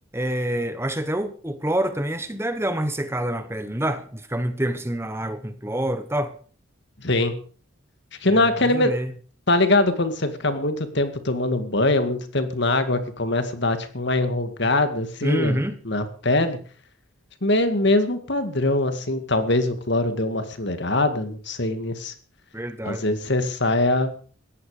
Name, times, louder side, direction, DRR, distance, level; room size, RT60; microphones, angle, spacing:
voice 1, 0.1-6.4 8.3-9.1 14.6-14.7 15.2-15.8 22.5-23.0, right 1 dB, 10° right, 1.1 m, -27 dB
voice 2, 7.0-7.3 8.2-9.0 9.5-16.6 17.4-22.1 22.9-24.1, left 2 dB, 55° left, 2.2 m, -22 dB
18.5 x 14.0 x 5.1 m
head